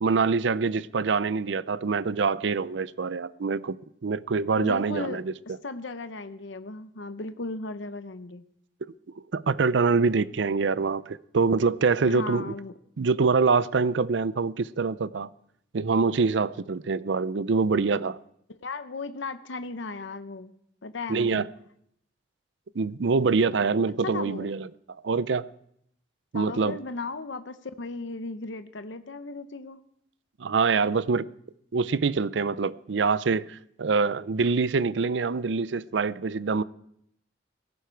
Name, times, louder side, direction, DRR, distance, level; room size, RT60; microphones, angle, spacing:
voice 1, 0.0-3.8 4.0-5.3 8.8-8.9 9.3-12.5 13.0-15.3 15.7-18.2 21.1-21.5 22.8-24.7 25.0-25.5 26.3-26.8 30.4-31.3 31.7-36.6, right 4 dB, 80° right, 0.5 m, -25 dB
voice 2, 4.6-8.4 12.0-12.7 18.5-20.5 20.8-21.5 23.9-24.5 26.3-29.8, left 3 dB, 90° left, 0.8 m, -36 dB
17.5 x 15.0 x 4.6 m
head